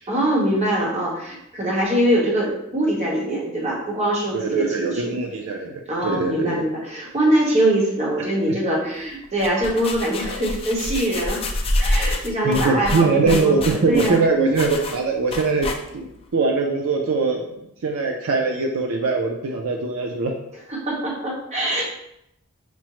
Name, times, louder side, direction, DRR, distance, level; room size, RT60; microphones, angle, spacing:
voice 1, 0.1-5.1 5.9-11.4 11.8-14.2 20.8-21.8, right 1 dB, 30° right, -3 dB, 1.0 m, -23 dB
voice 2, 4.3-6.7 12.4-15.7 15.9-17.4 17.8-20.3, right 4 dB, 75° right, 1 dB, 0.5 m, -22 dB
sound 1, 9.2-16.2, left 1 dB, 25° left, 0.4 m, -27 dB
5.8 x 2.1 x 3.0 m, 0.79 s
head